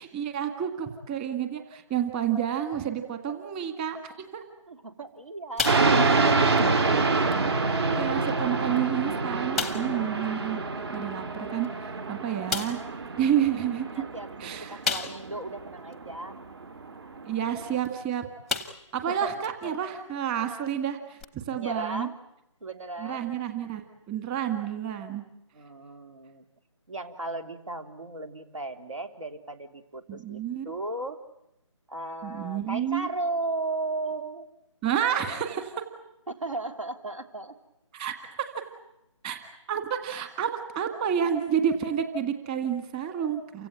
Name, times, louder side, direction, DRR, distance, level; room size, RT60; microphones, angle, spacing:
voice 1, 0.0-4.0 4.3-4.4 6.1-6.2 7.1-7.3 7.6-10.6 10.9-12.8 13.2-14.0 14.4-14.8 17.2-18.2 18.9-22.1 23.0-25.2 30.1-30.6 32.2-33.1 34.8-35.7 37.9-38.5 39.2-43.7, right 9 dB, 15° right, 7 dB, 1.8 m, -30 dB
voice 2, 4.7-6.8 13.9-16.4 19.1-19.7 21.5-22.1 22.6-23.3 25.5-26.4 26.9-31.2 31.9-34.5 36.3-37.6 40.2-40.3, right 2 dB, 80° right, 8 dB, 3.5 m, -36 dB
sound 1, 5.6-6.3 6.6-6.7 7.3-7.4 8.3-8.4 8.8-8.9 9.5-10.0 11.6-11.7 12.5-12.9 14.8-15.4 15.9-16.0 17.8-18.0 18.5-19.0 19.4-19.5 21.2-21.3, left 5 dB, ahead, 0.9 m, -31 dB
sound 2, 5.6-17.8, right 3 dB, 55° right, 2.5 m, -27 dB
29.0 x 16.5 x 9.1 m, 0.84 s
figure-of-eight pair, 160°, 16 cm